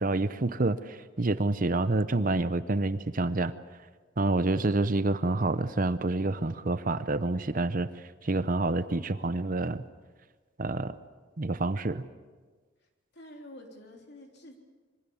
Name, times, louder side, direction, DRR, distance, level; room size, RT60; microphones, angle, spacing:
voice 1, 0.0-3.5 4.2-9.8 10.6-11.0 11.4-12.1, right 2 dB, 40° right, 13 dB, 0.8 m, -28 dB
voice 2, 12.8-14.6, left 1 dB, 50° left, 2 dB, 3.4 m, -49 dB
26.0 x 23.0 x 7.1 m, 1.4 s
head